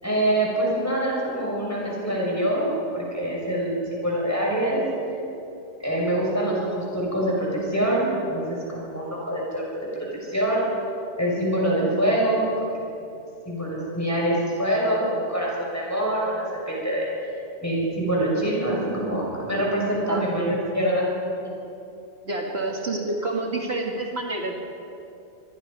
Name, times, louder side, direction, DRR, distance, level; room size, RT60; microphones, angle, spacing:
voice 1, 0.0-4.8 5.8-9.6 9.9-10.7 11.2-12.5 13.4-17.1 17.6-21.1 21.4-21.5, right 1 dB, 15° left, -4 dB, 6.5 m, -25 dB
voice 2, 20.0-20.5 22.2-24.5, right 2 dB, 65° right, 0 dB, 2.3 m, -28 dB
25.5 x 21.0 x 5.4 m, 2.8 s
omnidirectional pair, 1.2 m